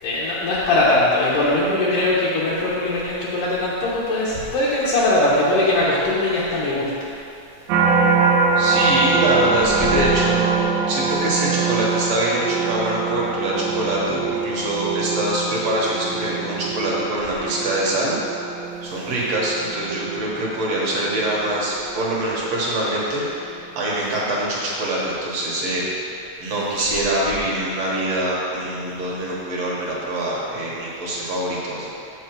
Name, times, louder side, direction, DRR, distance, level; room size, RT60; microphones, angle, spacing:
voice 1, 0.0-7.1, left 2 dB, 65° left, -8 dB, 2.5 m, -20 dB
sound 1, 7.7-22.9 23.4-23.8, right 4 dB, 85° right, 2.5 m, -24 dB
voice 2, 8.6-10.4 10.9-18.2 18.8-26.1 26.4-31.9, right 1 dB, 55° right, -5 dB, 2.0 m, -24 dB
8.8 x 6.9 x 4.5 m, 2.7 s
omnidirectional pair, 4.2 m